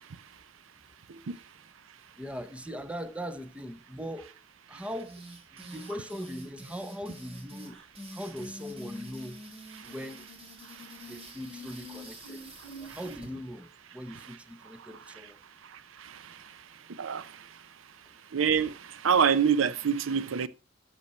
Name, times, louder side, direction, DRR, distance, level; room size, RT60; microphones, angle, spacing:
voice 1, 2.2-4.3 4.7-7.8 8.1-9.4 9.8-10.3 11.1-12.4 12.8-15.4, equal, 5° right, 0.8 m, -40 dB
sound 1, 5.0-13.3, equal, 30° right, 2.4 m, -45 dB
voice 2, 15.7-16.4 17.0-17.5 18.3-20.5, right 7 dB, 75° right, 0.6 m, -27 dB
13.0 x 6.4 x 4.2 m
head